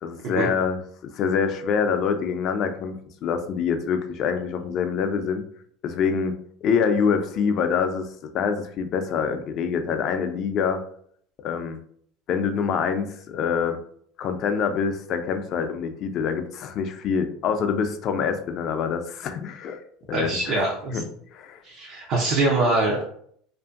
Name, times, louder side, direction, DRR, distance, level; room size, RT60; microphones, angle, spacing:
voice 1, 0.0-3.0 3.2-5.4 5.8-6.4 6.6-10.8 11.4-11.8 12.3-13.8 14.2-19.8 20.1-20.6 20.9-21.0 21.3-21.6, left 6 dB, 50° left, 7 dB, 0.4 m, -25 dB
voice 2, 20.1-21.0 21.6-23.1, right 2 dB, 60° right, -2 dB, 0.6 m, -23 dB
2.6 x 2.5 x 2.4 m, 0.63 s
supercardioid pair, 100°, 0 cm